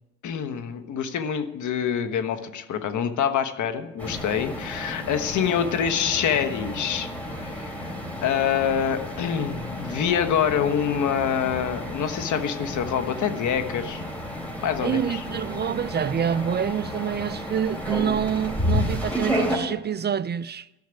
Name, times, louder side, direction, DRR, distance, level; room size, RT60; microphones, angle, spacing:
voice 1, 0.2-7.9 8.2-14.0 14.6-15.2, left 8 dB, 75° left, 1.3 m, -26 dB
sound 1, 4.0-19.6, equal, 5° left, 4.3 m, -32 dB
voice 2, 14.8-20.7, right 8 dB, 35° right, 0.4 m, -27 dB
13.5 x 6.5 x 9.8 m
cardioid pair, 90°, 30 cm